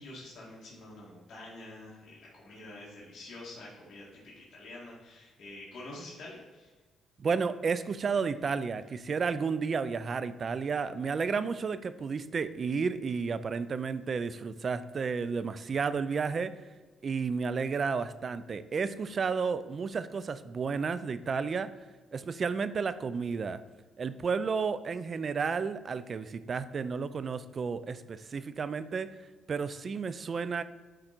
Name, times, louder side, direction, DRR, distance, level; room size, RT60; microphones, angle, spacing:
voice 1, 0.0-6.7, left 2 dB, 55° left, -6 dB, 2.1 m, -47 dB
voice 2, 7.2-16.6 17.0-21.7 22.1-23.6 24.0-29.2 29.5-30.6, right 5 dB, 45° right, 13 dB, 0.5 m, -32 dB
9.8 x 3.8 x 4.4 m, 1.3 s
cardioid pair, 90°, 0 cm